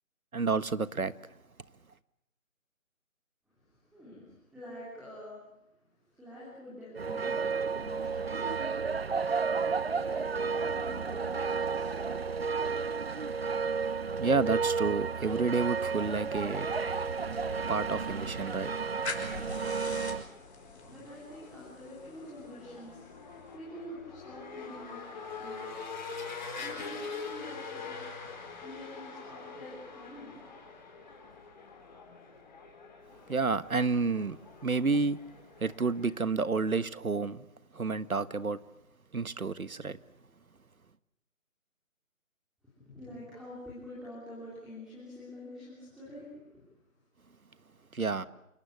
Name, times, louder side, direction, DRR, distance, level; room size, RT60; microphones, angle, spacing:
voice 1, 0.3-1.1 14.2-16.8 17.7-18.7 33.3-34.4 34.6-35.2 35.6-37.4 37.7-38.6 39.1-40.0 47.9-48.2, right 4 dB, 85° right, 1.5 m, -30 dB
voice 2, 3.6-5.4 6.1-8.6 9.9-11.9 20.5-25.9 26.5-28.0 28.6-30.4 42.8-46.6, left 1 dB, ahead, 3.4 m, -47 dB
sound 1, 7.0-20.2, right 5 dB, 45° right, 0.9 m, -32 dB
sound 2, 16.3-36.2, left 4 dB, 35° left, 4.2 m, -45 dB
sound 3, 16.6-23.6, left 3 dB, 50° left, 5.6 m, -46 dB
28.5 x 18.0 x 8.4 m
figure-of-eight pair, 165°, 41 cm